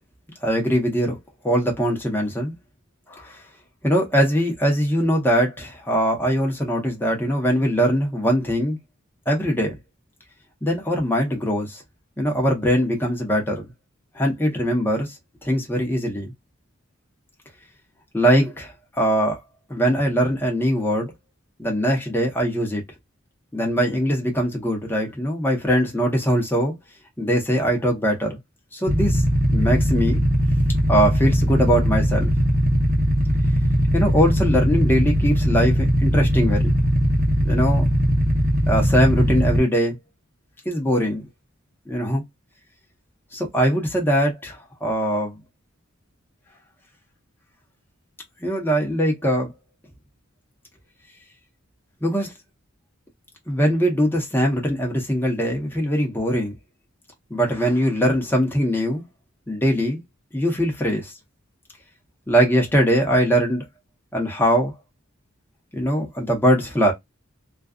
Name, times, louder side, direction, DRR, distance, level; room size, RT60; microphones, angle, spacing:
voice 1, 0.4-1.2 1.4-2.5 3.1-3.4 3.8-8.8 9.3-9.7 10.6-11.8 12.2-13.7 14.1-15.1 15.4-16.3 18.1-19.4 19.7-21.1 21.6-22.8 23.5-26.7 27.2-28.4 28.7-29.2 29.5-30.2 30.9-32.3 33.9-36.7 37.4-37.9 38.7-40.0 40.6-41.2 41.9-42.2 43.3-45.3 48.4-49.5 52.0-52.3 53.5-56.5 57.3-59.0 59.5-60.0 60.3-61.1 62.3-63.6 64.1-64.7 65.7-66.9, equal, 10° left, 0.9 m, -21 dB
Motorcycle / Idling, 28.9-39.6, equal, 45° right, 0.8 m, -20 dB
2.4 x 2.3 x 2.3 m
head